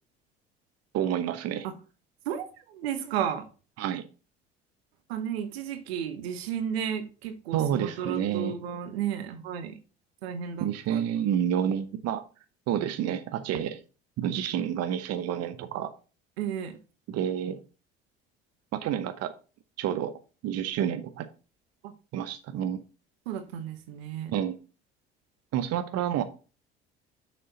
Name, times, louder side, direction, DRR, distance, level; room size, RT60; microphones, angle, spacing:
voice 1, 0.9-1.7 3.8-4.0 7.5-8.5 10.6-12.2 12.7-13.8 14.2-15.9 17.1-17.6 18.7-19.3 19.8-20.1 20.4-21.3 22.1-22.8 24.3-24.6 25.5-26.2, right 10 dB, 55° right, 0.9 m, -29 dB
voice 2, 2.2-3.5 5.1-9.8 10.2-11.0 16.4-16.8 21.8-21.9 22.6-22.7 23.3-24.3, right 8 dB, 80° right, 1.1 m, -33 dB
6.8 x 6.3 x 3.9 m
hypercardioid pair, 60°, 30 cm